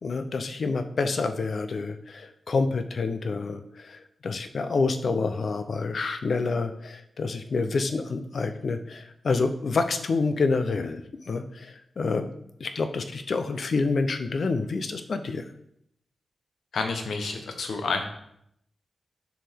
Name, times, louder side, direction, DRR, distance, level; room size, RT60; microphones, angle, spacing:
voice 1, 0.0-12.3 12.6-15.4, left 4 dB, 55° left, 8 dB, 0.6 m, -28 dB
voice 2, 16.7-18.1, left 4 dB, 90° left, 5 dB, 0.9 m, -29 dB
7.3 x 4.8 x 3.5 m, 0.73 s
wide cardioid pair, 145°, 0 cm